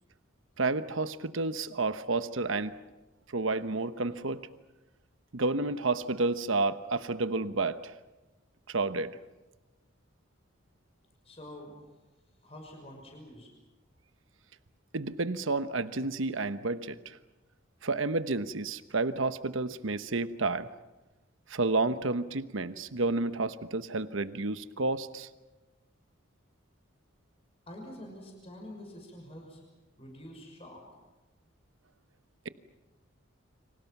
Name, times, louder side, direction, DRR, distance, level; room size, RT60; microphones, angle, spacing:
voice 1, 0.6-2.8 3.3-4.4 5.3-7.9 8.7-9.2 14.9-17.2 17.8-20.7 21.5-25.3, right 3 dB, 75° right, 12 dB, 1.1 m, -30 dB
voice 2, 11.2-11.8 12.3-13.5 27.7-29.6 30.0-30.8, left 1 dB, 30° left, 1 dB, 6.0 m, -47 dB
30.0 x 26.0 x 6.0 m, 1.1 s
head